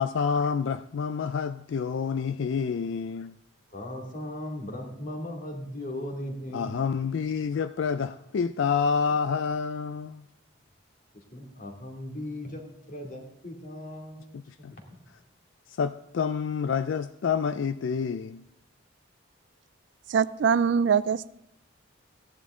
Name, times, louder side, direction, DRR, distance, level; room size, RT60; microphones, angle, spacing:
voice 1, 0.0-3.3 6.5-10.2 14.3-14.7 15.7-18.4, left 6 dB, 65° left, 0.3 m, -28 dB
voice 2, 3.7-7.0 7.9-8.1 11.3-14.4 14.7-15.0, left 1 dB, 40° left, 2.3 m, -38 dB
voice 3, 20.1-21.4, right 6 dB, 55° right, 0.3 m, -23 dB
15.5 x 11.0 x 3.7 m
head